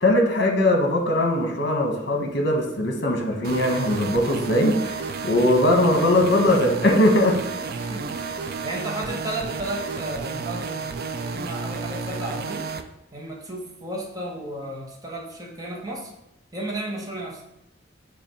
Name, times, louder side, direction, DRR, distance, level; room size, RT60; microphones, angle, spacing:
voice 1, 0.0-7.4, left 1 dB, 55° left, 2 dB, 1.3 m, -20 dB
sound 1, 3.4-12.8, right 4 dB, 50° right, 0.5 m, -31 dB
voice 2, 7.8-8.3 8.6-10.9 11.2-12.7 13.1-16.1 16.5-17.4, right 1 dB, 20° right, -1 dB, 1.0 m, -33 dB
6.9 x 2.5 x 5.5 m, 0.83 s
head